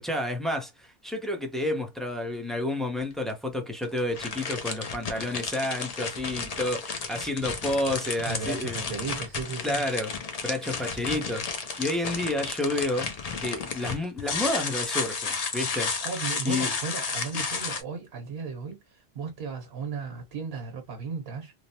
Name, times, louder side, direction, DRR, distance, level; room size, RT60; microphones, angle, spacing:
voice 1, 0.0-8.8 9.6-10.1 10.4-13.1 13.4-15.9 16.4-16.7 17.3-17.4, left 1 dB, ahead, 0.5 m, -30 dB
sound 1, 3.0-3.1 3.8-17.8, left 5 dB, 45° left, 0.6 m, -32 dB
voice 2, 8.3-9.8 16.0-21.5, right 5 dB, 70° right, 1.1 m, -35 dB
3.1 x 2.0 x 2.7 m
omnidirectional pair, 1.0 m